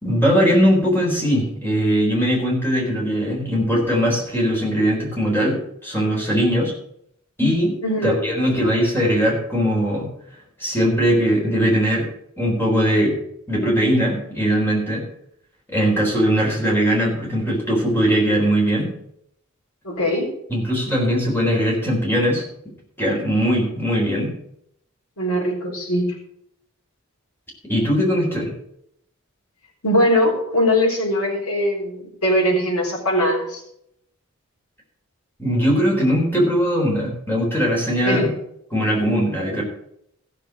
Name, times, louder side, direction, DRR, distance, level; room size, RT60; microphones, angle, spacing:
voice 1, 0.0-6.7 7.4-7.8 8.0-10.1 10.6-12.1 12.4-13.2 13.5-15.1 15.7-18.9 20.5-22.4 23.0-24.3 27.7-28.5 35.4-38.3 38.7-39.6, equal, 10° left, -2 dB, 3.9 m, -20 dB
voice 2, 7.8-8.2 19.8-20.3 25.2-26.1 29.8-33.6 38.0-38.3, equal, 90° left, -3 dB, 4.0 m, -21 dB
14.5 x 6.7 x 6.4 m, 0.73 s
head